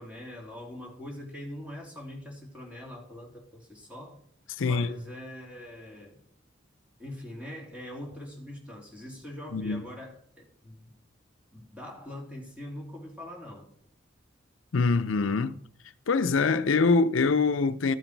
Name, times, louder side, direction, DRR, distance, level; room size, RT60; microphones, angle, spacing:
voice 1, 0.0-4.2 4.6-6.2 7.0-10.9 11.5-13.7, left 1 dB, 5° right, 2.9 m, -43 dB
voice 2, 4.6-4.9 9.5-9.9 14.7-15.6 16.1-17.9, left 4 dB, 85° left, 0.6 m, -24 dB
13.5 x 8.0 x 4.6 m
head